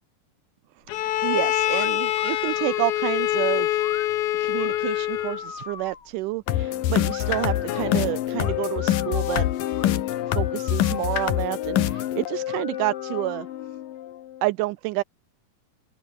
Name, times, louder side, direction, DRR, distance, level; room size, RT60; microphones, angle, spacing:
Bowed string instrument, 0.9-5.5, left 14 dB, 70° left, 2.3 m, -25 dB
voice 1, 1.0-3.9 4.4-9.5 10.3-13.5 14.4-15.0, right 19 dB, 80° right, 2.1 m, -29 dB
sound 1, 1.7-1.9 2.2-2.9 3.8-4.1 4.6-6.1 7.1-7.9 8.4-9.3 9.8-9.9 10.2-11.3 11.8-12.1 12.5-13.6, left 6 dB, 40° left, 3.1 m, -42 dB
sound 2, 6.5-14.4, left 12 dB, 85° left, 3.0 m, -26 dB
open air
omnidirectional pair, 3.8 m